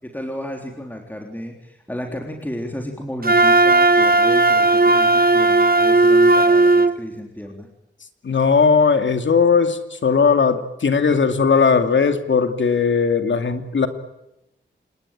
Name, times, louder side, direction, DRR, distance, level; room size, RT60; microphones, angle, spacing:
voice 1, 0.0-7.7, equal, 10° left, 2 dB, 3.7 m, -33 dB
Wind instrument woodwind instrument, 3.2-6.9, right 2 dB, 50° right, 1.5 m, -15 dB
voice 2, 8.2-13.9, left 5 dB, 75° left, 7 dB, 2.6 m, -18 dB
27.5 x 21.0 x 9.0 m, 0.88 s
wide cardioid pair, 115°, 19 cm